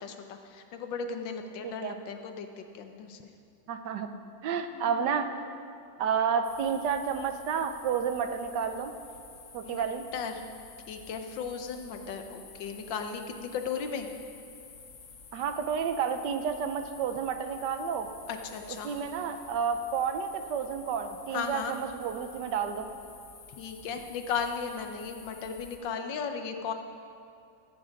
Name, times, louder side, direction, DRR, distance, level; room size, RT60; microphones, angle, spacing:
voice 1, 0.0-3.2 4.7-5.0 9.6-9.8 10.1-10.4 10.9-14.1 18.3-19.0 21.3-21.7 23.5-26.7, left 6 dB, 80° left, 6 dB, 1.6 m, -36 dB
voice 2, 1.6-1.9 3.7-4.1 4.4-5.3 6.0-8.9 9.5-10.0 15.3-18.1 18.8-22.9, right 7 dB, 75° right, 8 dB, 1.3 m, -30 dB
sound 1, 6.4-25.8, left 5 dB, 60° left, 1.6 m, -51 dB
14.5 x 8.4 x 5.1 m, 2.6 s
omnidirectional pair, 2.0 m